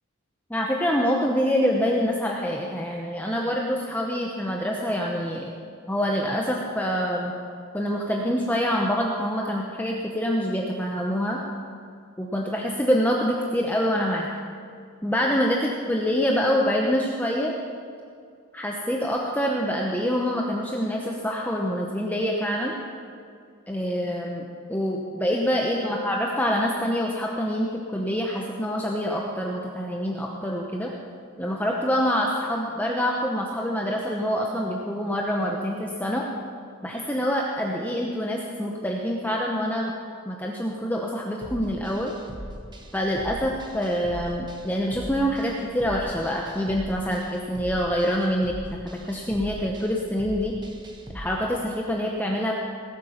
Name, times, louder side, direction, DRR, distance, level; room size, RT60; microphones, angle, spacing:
voice 1, 0.5-5.5 5.9-7.3 7.7-11.4 12.2-14.3 15.0-17.5 18.5-22.7 23.7-24.4 24.7-30.9 31.4-36.2 36.8-39.9 40.3-42.1 42.9-48.5 48.9-50.5 51.1-52.7, equal, 10° left, -1 dB, 0.8 m, -26 dB
sound 1, 41.4-51.3, equal, 20° right, 1.2 m, -40 dB
19.0 x 8.5 x 5.7 m, 2.3 s
head